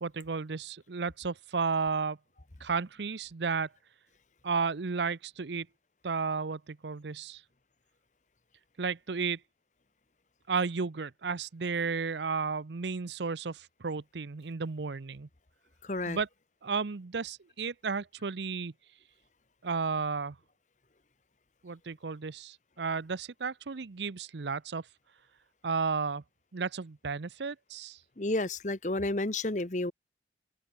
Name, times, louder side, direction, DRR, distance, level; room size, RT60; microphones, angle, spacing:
voice 1, 0.0-2.2 2.6-3.7 4.4-5.7 6.0-7.4 8.8-9.4 10.5-15.3 16.1-16.3 16.6-18.7 19.6-20.4 21.6-24.9 25.6-26.2 26.5-28.0, right 5 dB, 75° right, 0.7 m, -33 dB
voice 2, 15.8-16.2 28.2-29.9, left 2 dB, 40° left, 1.2 m, -31 dB
open air
head